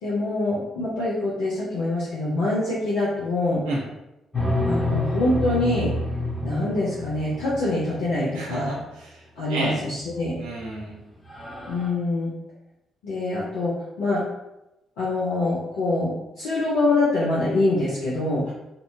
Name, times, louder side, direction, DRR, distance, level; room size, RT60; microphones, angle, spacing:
voice 1, 0.0-3.6 4.6-5.9 6.4-8.7 9.4-10.3 11.7-12.3 13.0-14.2 15.0-18.4, left 2 dB, 65° left, -8 dB, 0.5 m, -25 dB
sound 1, 4.3-8.2 10.1-10.6 10.9-11.0 11.3-11.9, left 1 dB, 5° left, 0.9 m, -28 dB
voice 2, 8.3-9.1 9.5-9.8 10.4-11.0, right 1 dB, 75° right, -4 dB, 0.6 m, -30 dB
2.6 x 2.2 x 2.5 m, 0.93 s
figure-of-eight pair, 40°, 0 cm